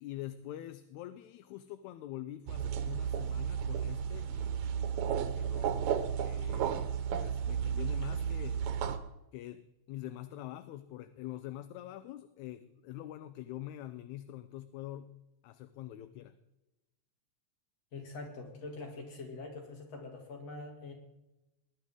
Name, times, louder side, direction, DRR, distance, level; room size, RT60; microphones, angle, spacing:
voice 1, 0.0-5.9 6.2-8.7 9.3-15.2 15.4-16.4, left 13 dB, 80° left, 12 dB, 1.9 m, -45 dB
sound 1, 2.5-9.0, right 8 dB, 75° right, 2.1 m, -33 dB
voice 2, 17.9-20.9, left 3 dB, 55° left, 2 dB, 3.5 m, -44 dB
19.5 x 11.5 x 3.7 m, 0.97 s
omnidirectional pair, 3.4 m